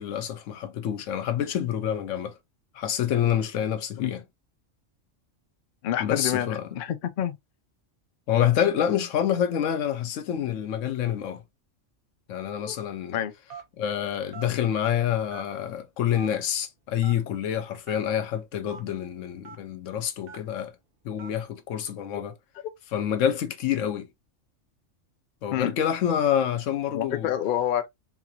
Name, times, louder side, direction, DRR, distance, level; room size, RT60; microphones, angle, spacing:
voice 1, 0.0-2.3 2.7-4.2 6.0-6.7 8.3-11.4 12.3-13.2 13.8-20.7 21.0-22.3 22.9-24.1 25.4-27.3, left 9 dB, 85° left, 1.0 m, -27 dB
voice 2, 5.8-7.4 12.7-12.8 13.1-13.3 25.5-25.7 26.9-27.9, left 10 dB, 60° left, 0.5 m, -28 dB
Telephone, 13.5-13.8 14.3-14.5 15.3-15.7 16.2-16.3 17.0-17.2 17.8-18.0 18.7-18.8 19.4-19.6 20.3-20.5 21.2-21.4, right 6 dB, 50° right, 1.0 m, -42 dB
3.9 x 2.5 x 2.9 m
omnidirectional pair, 1.3 m